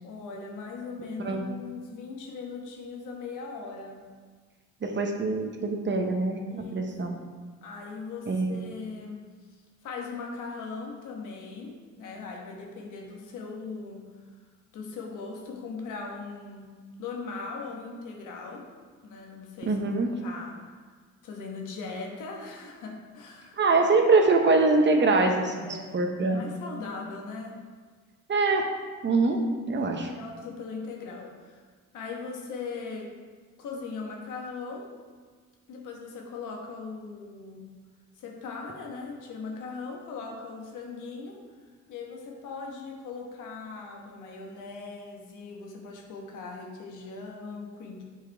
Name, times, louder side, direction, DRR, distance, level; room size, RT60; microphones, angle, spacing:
voice 1, 0.0-4.0 6.5-7.2 7.6-9.2 9.8-14.0 14.7-16.7 17.0-18.6 19.0-19.8 20.2-20.7 21.2-23.9 25.6-27.6 29.3-31.6 31.9-33.1 33.6-34.9 35.7-37.7 38.2-41.4 41.9-48.0, left 4 dB, 85° left, 0 dB, 1.3 m, -39 dB
voice 2, 4.8-7.2 8.3-8.6 19.6-20.1 23.6-26.4 28.3-28.6 29.0-29.4 29.7-30.1, right 3 dB, 40° right, 3 dB, 0.9 m, -24 dB
7.4 x 4.8 x 3.5 m, 1.5 s
cardioid pair, 90°, 30 cm